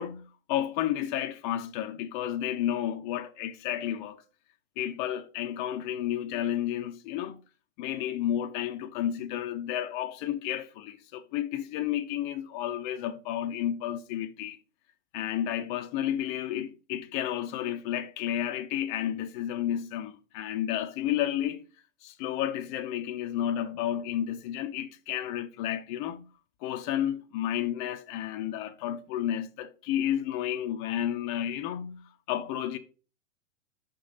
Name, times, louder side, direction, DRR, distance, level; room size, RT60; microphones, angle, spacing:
voice 1, 0.0-4.2 4.8-7.4 7.8-14.6 15.1-21.6 22.0-26.2 26.6-32.8, left 11 dB, 40° left, 0.7 m, -31 dB
5.8 x 5.2 x 4.1 m
hypercardioid pair, 110°, 40 cm